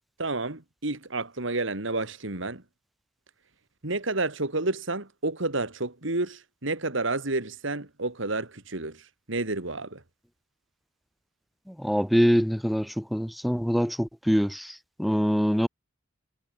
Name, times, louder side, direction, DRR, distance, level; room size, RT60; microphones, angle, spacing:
voice 1, 0.2-2.6 3.8-9.0 9.3-10.0, right 2 dB, 70° right, 2.8 m, -30 dB
voice 2, 11.8-14.7 15.0-15.7, equal, ahead, 4.4 m, -24 dB
head